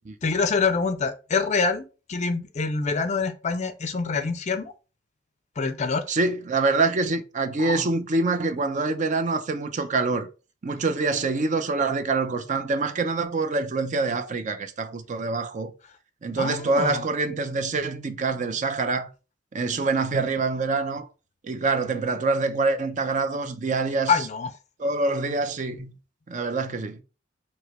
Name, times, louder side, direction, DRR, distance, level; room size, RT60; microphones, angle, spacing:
voice 1, 0.2-4.7 5.6-6.1 7.6-7.9 16.4-17.0 24.1-24.5, left 4 dB, 35° left, 0.4 m, -26 dB
voice 2, 6.1-10.3 10.6-15.7 16.2-19.1 19.5-21.1 21.4-24.1 24.8-25.9 26.3-27.0, right 3 dB, 40° right, 0.5 m, -25 dB
4.7 x 2.8 x 2.9 m
head